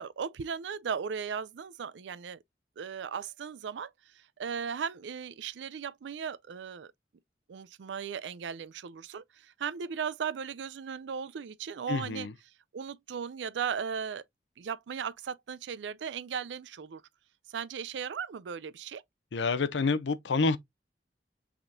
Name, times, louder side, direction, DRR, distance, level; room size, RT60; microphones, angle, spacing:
voice 1, 0.0-2.4 2.8-6.9 7.5-12.3 12.7-14.2 14.6-17.0 17.5-19.0, right 6 dB, 90° right, 0.4 m, -37 dB
voice 2, 11.9-12.3 19.3-20.6, left 4 dB, 90° left, 0.6 m, -28 dB
5.8 x 3.6 x 2.5 m
head